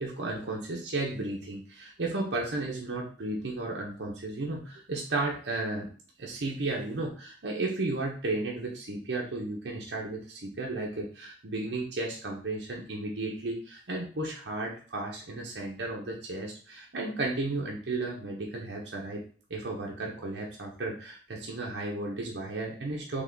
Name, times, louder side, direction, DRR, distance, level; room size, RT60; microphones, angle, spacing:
voice 1, 0.0-5.9 6.2-19.2 19.5-23.2, right 2 dB, 75° right, -2 dB, 0.9 m, -34 dB
3.9 x 3.6 x 3.5 m, 0.40 s
head